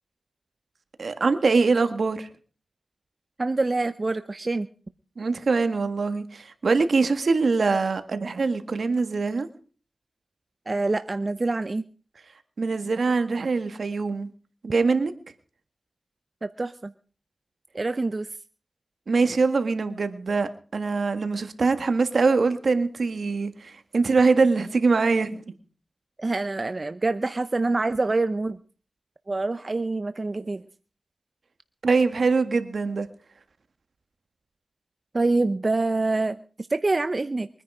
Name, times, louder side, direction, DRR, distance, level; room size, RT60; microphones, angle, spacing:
voice 1, 1.0-2.3 5.2-9.5 12.6-14.3 14.6-15.1 19.1-25.4 31.8-33.1, right 4 dB, 75° right, 9 dB, 1.7 m, -23 dB
voice 2, 3.4-4.7 10.7-11.8 16.4-16.9 17.7-18.3 26.2-28.6 29.3-30.6 35.1-36.4 36.7-37.5, right 3 dB, 45° right, 11 dB, 0.7 m, -26 dB
23.0 x 10.0 x 4.9 m, 0.41 s
cardioid pair, 45°, 0 cm